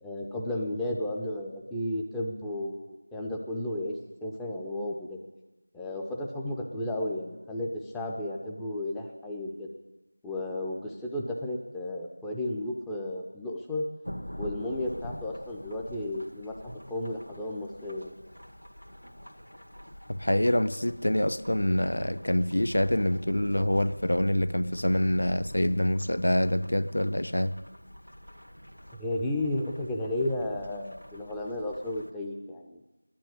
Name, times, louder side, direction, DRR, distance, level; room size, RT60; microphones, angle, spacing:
voice 1, 0.0-3.9 4.2-5.2 5.7-9.7 10.2-13.9 14.4-18.1 29.0-32.8, left 1 dB, ahead, 0.4 m, -33 dB
Thunderstorm / Rain, 14.0-32.1, equal, 80° left, 1.6 m, -45 dB
voice 2, 20.1-27.5, left 1 dB, 50° left, 0.5 m, -26 dB
10.5 x 10.0 x 8.6 m
figure-of-eight pair, 175°, 0 cm